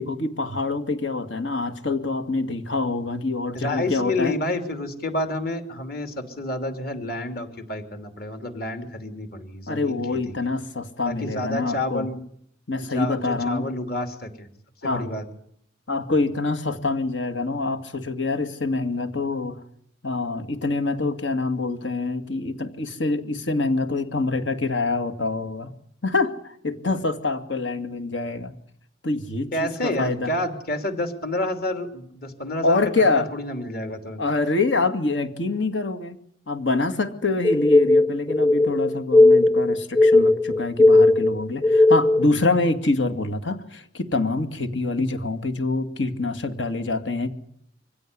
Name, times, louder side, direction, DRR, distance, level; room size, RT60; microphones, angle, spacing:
voice 1, 0.0-4.4 9.7-12.1 12.7-13.7 14.8-15.1 15.9-19.6 20.0-25.7 26.0-28.5 29.0-30.3 32.6-33.3 34.2-36.2 36.5-47.3, left 3 dB, 80° left, 8 dB, 2.2 m, -25 dB
voice 2, 3.5-10.0 10.3-10.4 11.1-12.2 12.8-14.5 14.9-15.2 29.5-32.8 33.1-34.2, left 1 dB, 55° left, 6 dB, 3.1 m, -29 dB
sound 1, 37.4-42.3, left 2 dB, 25° left, 0.9 m, -17 dB
24.5 x 16.5 x 9.7 m, 0.70 s
head